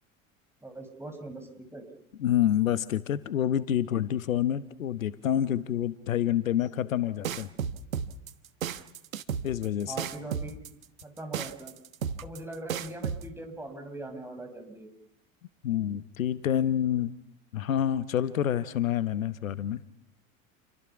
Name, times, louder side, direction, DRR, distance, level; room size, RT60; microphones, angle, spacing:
voice 1, 0.6-1.8 9.9-10.6 11.0-11.7 12.2-14.9, right 1 dB, 5° right, 4 dB, 6.4 m, -41 dB
voice 2, 2.2-7.5 9.4-9.9 15.6-17.1 17.5-19.8, left 10 dB, 75° left, 15 dB, 1.1 m, -27 dB
sound 1, 7.2-13.2, right 8 dB, 75° right, 1.2 m, -33 dB
29.5 x 23.5 x 5.9 m, 0.78 s
figure-of-eight pair, 75°, 41 cm